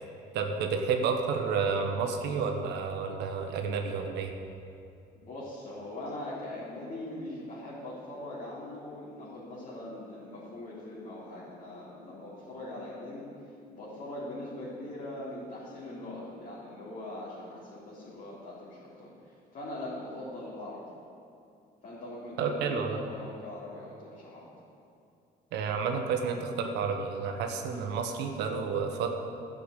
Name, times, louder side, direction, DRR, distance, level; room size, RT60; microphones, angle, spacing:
voice 1, 0.3-4.3 22.4-23.0 25.5-29.1, right 5 dB, 85° right, 4 dB, 1.2 m, -30 dB
voice 2, 5.2-13.3 13.7-20.9 21.8-24.5, left 1 dB, 50° left, -9 dB, 3.5 m, -41 dB
12.0 x 6.9 x 8.3 m, 2.6 s
cardioid pair, 110°, 17 cm